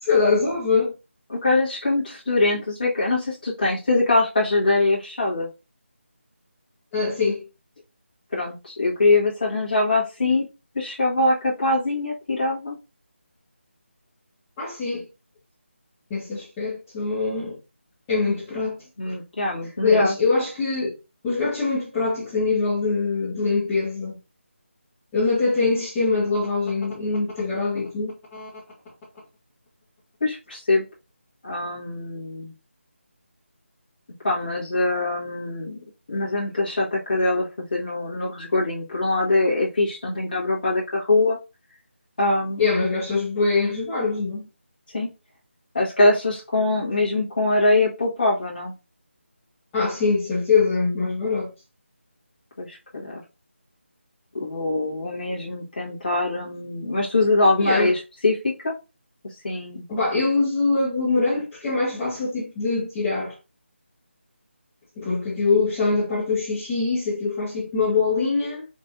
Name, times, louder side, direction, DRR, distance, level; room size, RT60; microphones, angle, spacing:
voice 1, 0.0-0.9 6.9-7.5 14.6-15.0 16.1-17.6 18.1-19.2 19.8-20.9 21.2-24.2 25.1-28.5 42.6-44.5 49.7-51.5 57.6-57.9 59.9-63.4 64.9-68.7, left 4 dB, 10° left, 1.3 m, -23 dB
voice 2, 1.3-5.5 8.3-10.5 10.7-12.8 19.0-20.1 30.2-30.8 31.4-32.5 34.2-35.8 36.1-41.4 42.2-42.7 44.9-45.1 45.7-48.7 52.6-53.2 54.4-58.7 59.4-59.8, left 2 dB, 45° left, 1.5 m, -23 dB
4.2 x 3.2 x 2.6 m
figure-of-eight pair, 160°, 7 cm